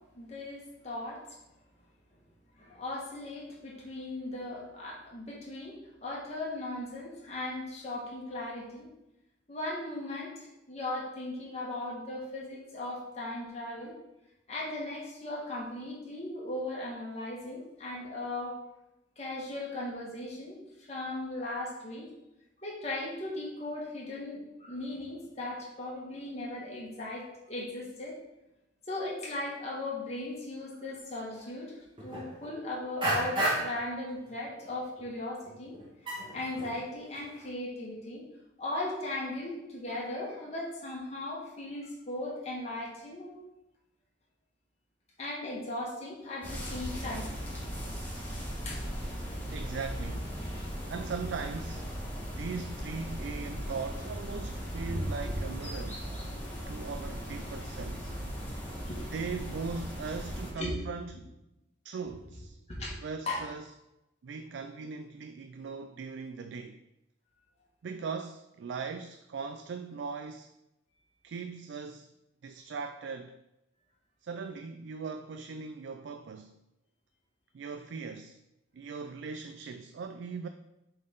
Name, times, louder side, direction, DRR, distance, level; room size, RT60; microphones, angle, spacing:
voice 1, 0.1-1.2 2.6-8.9 9.5-13.9 14.5-18.5 19.2-20.6 20.9-22.1 22.6-28.2 28.9-31.7 32.0-35.7 36.3-38.2 38.6-43.4 45.2-47.6 48.7-48.8 54.9-55.1 58.9-59.1 60.6-60.7 62.7-62.9 63.3-63.4, left 2 dB, 35° left, 1.8 m, -37 dB
sound 1, 31.4-31.5 32.0-32.5 33.0-33.9 34.3-34.7 35.0-35.1 35.5-36.9 37.2-37.5, right 1 dB, 25° right, 1.6 m, -32 dB
sound 2, 46.4-60.5, equal, 10° left, 1.6 m, -38 dB
voice 2, 49.5-50.4 50.9-51.9 52.3-56.0 56.7-58.1 59.1-61.4 61.8-62.6 63.0-63.7 64.2-66.8 67.8-70.5 71.2-72.1 72.4-73.4 74.2-76.5 77.5-78.4 78.7-80.5, right 5 dB, 75° right, 0.3 m, -39 dB
7.4 x 4.0 x 3.8 m
head